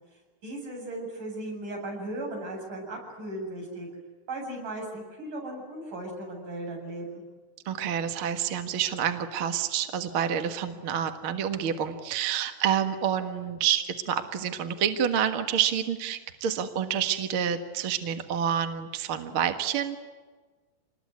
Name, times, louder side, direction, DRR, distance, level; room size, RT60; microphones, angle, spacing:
voice 1, 0.4-3.9 4.3-7.2, right 1 dB, 85° right, 0 dB, 9.5 m, -36 dB
voice 2, 7.7-20.0, right 8 dB, 50° right, 7 dB, 2.1 m, -28 dB
27.0 x 21.0 x 9.6 m, 1.3 s
omnidirectional pair, 3.5 m